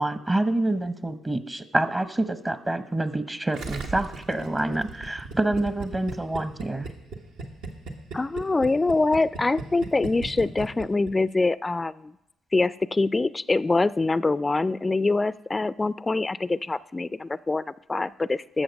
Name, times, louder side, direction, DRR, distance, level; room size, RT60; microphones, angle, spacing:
voice 1, 0.0-6.9, right 2 dB, 25° right, 12 dB, 0.8 m, -27 dB
Gurgling, 3.5-11.1 11.4-11.5, right 3 dB, 70° right, 1.1 m, -37 dB
voice 2, 8.1-12.1 12.5-18.6, left 3 dB, 25° left, 18 dB, 0.3 m, -24 dB
12.5 x 6.8 x 5.2 m, 0.88 s
hypercardioid pair, 45°, 0 cm